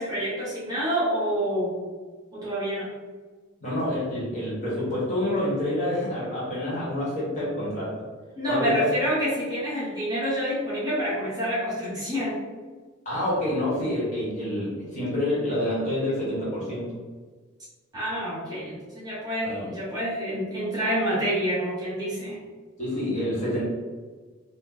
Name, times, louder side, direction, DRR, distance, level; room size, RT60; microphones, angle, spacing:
voice 1, 0.0-1.8 2.3-2.9 8.4-12.4 17.9-22.4, equal, 20° right, -9 dB, 0.9 m, -27 dB
voice 2, 3.6-8.0 8.5-8.8 13.0-17.0 19.4-19.7 22.8-23.6, left 1 dB, 35° left, -8 dB, 1.4 m, -27 dB
3.0 x 2.4 x 3.9 m, 1.4 s
head